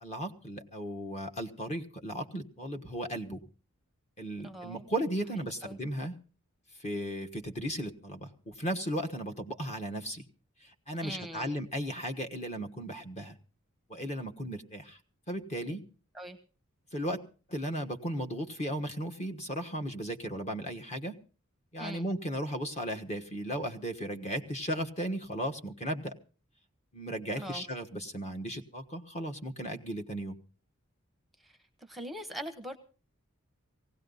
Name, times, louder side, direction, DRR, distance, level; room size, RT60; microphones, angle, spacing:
voice 1, 0.0-3.4 4.2-6.1 6.8-10.2 10.6-13.4 13.9-15.0 15.3-15.8 16.9-17.2 17.5-21.1 21.7-26.1 26.9-30.4, equal, 30° left, 6 dB, 1.3 m, -36 dB
voice 2, 4.4-4.8 5.6-5.8 11.0-11.6 16.1-16.4 21.8-22.0 27.4-27.6 31.4-31.5 31.9-32.8, right 1 dB, ahead, 8 dB, 0.9 m, -41 dB
18.5 x 16.5 x 4.0 m, 0.37 s
head